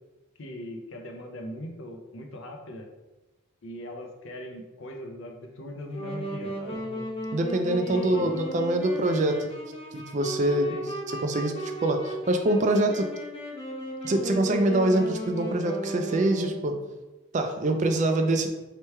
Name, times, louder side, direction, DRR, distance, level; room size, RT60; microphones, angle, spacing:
voice 1, 0.4-2.9 3.6-6.8 7.8-8.3 10.7-10.9, left 1 dB, 65° left, 3 dB, 0.6 m, -39 dB
Wind instrument woodwind instrument, 5.9-16.8, right 1 dB, 25° left, 0.8 m, -36 dB
voice 2, 6.7-7.0 7.3-9.5 9.9-10.7 11.2-13.1 14.0-16.7 17.3-18.5, right 1 dB, 35° right, 5 dB, 0.4 m, -25 dB
3.3 x 3.0 x 4.5 m, 1.1 s
head